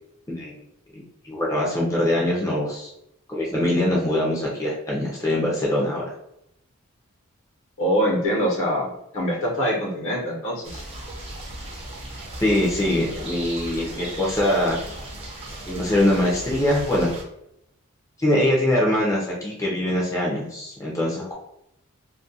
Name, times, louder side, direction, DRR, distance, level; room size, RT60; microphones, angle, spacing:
voice 1, 0.9-2.9 3.3-6.1 12.4-14.8 15.7-17.1 18.2-21.3, left 1 dB, 15° left, -4 dB, 0.5 m, -23 dB
voice 2, 7.8-10.8, equal, 65° left, -3 dB, 0.8 m, -24 dB
sound 1, 10.6-17.2, right 1 dB, 30° right, 0.6 m, -36 dB
2.3 x 2.2 x 2.6 m, 0.80 s
head